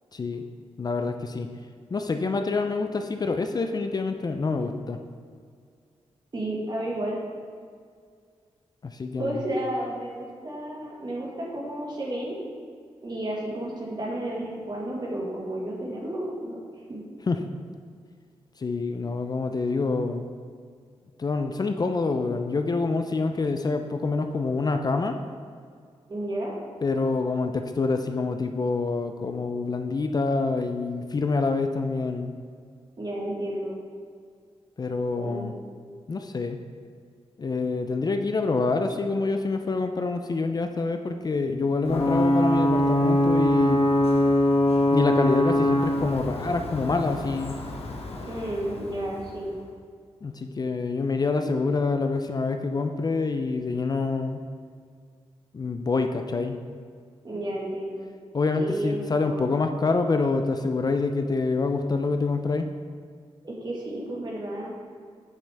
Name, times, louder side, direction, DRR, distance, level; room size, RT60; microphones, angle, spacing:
voice 1, 0.1-0.4 0.8-1.5 1.9-5.0 8.8-9.5 17.3-17.4 18.6-20.3 21.2-25.2 26.8-32.3 34.8-35.5 36.1-36.6 37.4-43.9 44.9-47.6 50.2-54.4 55.5-56.6 58.3-62.7, left 3 dB, 40° left, 6 dB, 0.4 m, -26 dB
voice 2, 6.3-7.2 9.2-12.4 13.0-16.6 16.9-17.0 26.1-26.5 33.0-33.8 35.2-35.5 48.3-49.5 57.2-58.0 58.6-59.4 63.4-64.7, right 1 dB, 40° right, -3 dB, 1.8 m, -32 dB
Ocean / Boat Water vehicle / Alarm, 41.9-49.4, left 1 dB, 65° left, 0.9 m, -23 dB
8.4 x 6.1 x 3.4 m, 2.1 s
wide cardioid pair, 95°, 11 cm